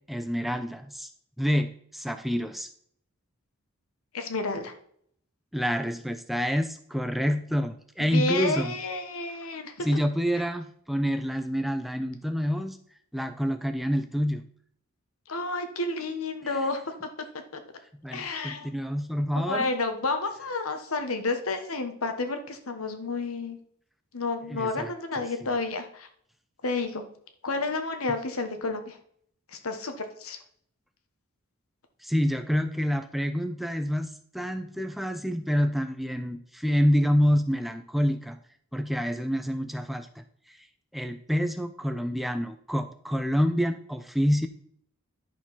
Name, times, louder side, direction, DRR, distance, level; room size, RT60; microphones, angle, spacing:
voice 1, 0.1-1.1 1.4-2.7 5.5-8.7 9.8-12.8 13.1-14.5 18.0-19.7 24.5-24.9 25.2-25.3 32.0-38.4 38.7-40.6 40.9-44.5, equal, ahead, 8 dB, 0.4 m, -27 dB
voice 2, 4.1-4.7 8.0-9.9 15.3-17.1 17.5-17.6 18.1-18.7 19.3-23.6 24.1-26.1 26.6-27.0 27.4-29.0 29.5-30.4, left 3 dB, 80° left, 7 dB, 1.3 m, -30 dB
10.5 x 4.7 x 5.6 m, 0.65 s
head